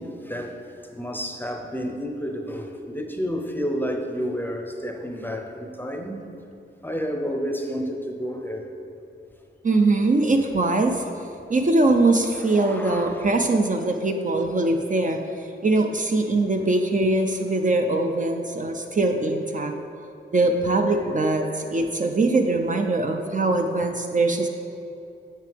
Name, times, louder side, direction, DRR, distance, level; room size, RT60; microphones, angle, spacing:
voice 1, 0.0-6.5 6.8-8.7 12.4-13.3, equal, 10° left, 3 dB, 0.6 m, -31 dB
voice 2, 9.6-11.0 11.5-19.7 20.3-24.5, right 2 dB, 40° right, 4 dB, 0.5 m, -22 dB
7.5 x 6.5 x 3.4 m, 2.8 s
wide cardioid pair, 90°, 21 cm